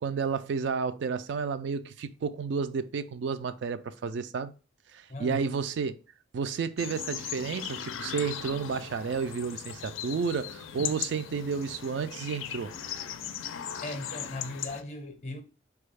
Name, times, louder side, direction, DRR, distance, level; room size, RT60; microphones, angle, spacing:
voice 1, 0.0-4.5 4.9-5.9 6.3-12.7, right 5 dB, 65° right, 0.3 m, -31 dB
voice 2, 5.1-5.6 10.8-10.9 13.8-15.4, left 1 dB, 35° left, 0.6 m, -38 dB
sound 1, 6.8-14.8, left 9 dB, 90° left, 0.4 m, -38 dB
4.1 x 2.3 x 3.2 m
head